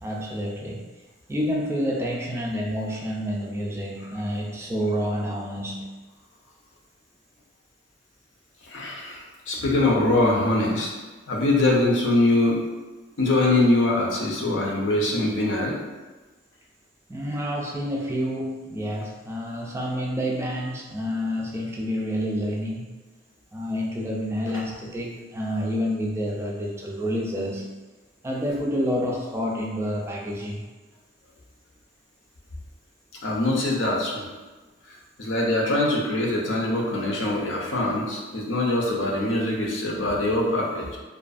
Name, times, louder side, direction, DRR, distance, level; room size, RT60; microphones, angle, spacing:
voice 1, 0.0-0.8 1.3-5.9 17.1-22.9 23.5-27.7 28.2-30.6, equal, 15° right, -2 dB, 0.3 m, -28 dB
voice 2, 8.7-10.9 11.3-12.6 13.2-15.8 33.2-34.3 35.2-41.0, left 2 dB, 85° left, -2 dB, 0.6 m, -23 dB
2.5 x 2.4 x 2.4 m, 1.2 s
head